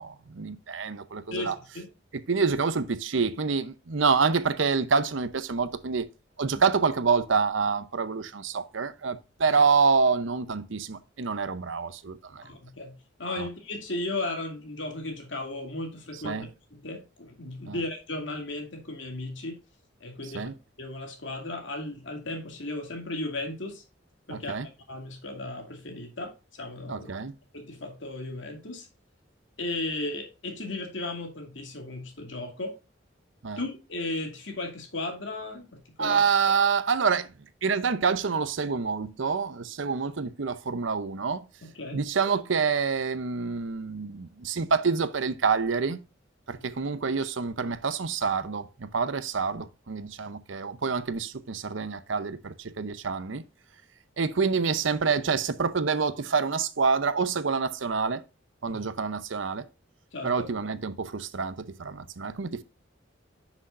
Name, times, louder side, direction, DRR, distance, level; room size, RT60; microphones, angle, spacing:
voice 1, 0.0-1.6 2.1-6.1 6.4-12.4 13.4-13.5 16.2-16.5 17.7-17.8 20.3-20.5 24.3-24.7 26.9-27.3 33.4-33.6 36.0-37.3 37.6-41.5 41.9-46.0 46.5-53.4 54.2-58.2 58.6-59.7 60.2-62.6, right 5 dB, 75° right, 0.7 m, -27 dB
voice 2, 1.3-1.9 6.5-6.6 12.4-19.6 20.0-23.8 24.3-27.1 27.5-28.9 29.6-32.8 33.6-36.2 41.6-42.0 58.6-58.8 60.1-60.3, left 2 dB, 70° left, 2.4 m, -35 dB
9.6 x 6.2 x 2.5 m
head